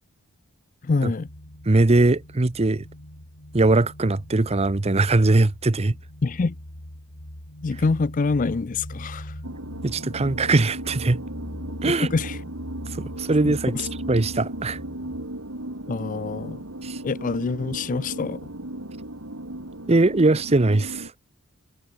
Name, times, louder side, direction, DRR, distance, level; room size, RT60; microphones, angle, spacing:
voice 1, 0.8-1.3 6.2-6.6 7.6-9.3 11.9-12.4 13.4-13.9 15.9-16.6 17.0-18.4, left 4 dB, 40° left, 0.5 m, -26 dB
sound 1, 1.3-15.3, left 1 dB, 75° left, 4.3 m, -41 dB
voice 2, 1.7-2.8 3.5-6.0 9.8-11.2 11.8-12.1 13.0-14.8 16.8-17.0 19.9-21.1, right 2 dB, 30° right, 0.7 m, -21 dB
sound 2, 9.4-21.1, right 1 dB, 80° right, 3.7 m, -36 dB
head